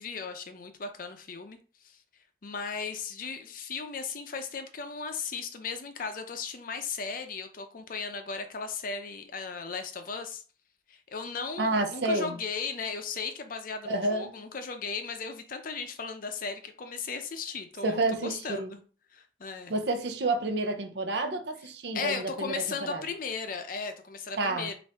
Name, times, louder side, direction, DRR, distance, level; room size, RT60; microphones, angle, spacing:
voice 1, 0.0-2.0 2.4-10.4 10.9-18.8 19.1-19.7 21.9-24.8, left 5 dB, 50° left, 0.5 m, -36 dB
voice 2, 11.6-12.4 13.9-14.3 17.8-18.7 19.7-23.0 24.4-24.7, right 2 dB, 65° right, 0.7 m, -29 dB
5.5 x 2.6 x 3.4 m
head